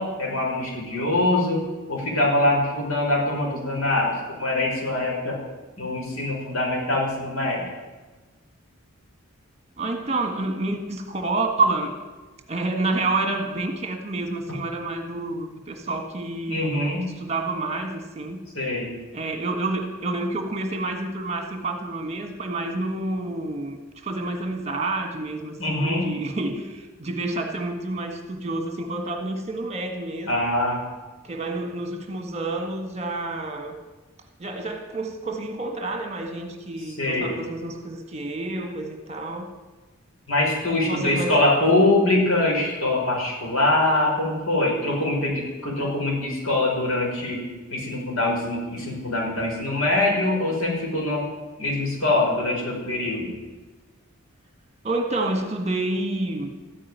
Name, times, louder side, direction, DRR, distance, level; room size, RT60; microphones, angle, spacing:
voice 1, 0.0-1.6 1.9-5.4 5.8-7.6 16.5-17.1 18.5-18.9 25.6-26.1 30.3-30.8 37.0-37.4 40.3-51.2 51.6-53.3, left 2 dB, 85° left, -2 dB, 5.8 m, -23 dB
voice 2, 9.8-12.0 12.5-16.9 17.2-18.4 19.1-30.3 31.2-33.8 34.4-39.5 40.8-41.4 54.8-56.5, right 2 dB, 30° right, 5 dB, 1.6 m, -28 dB
14.0 x 9.9 x 9.4 m, 1.3 s
head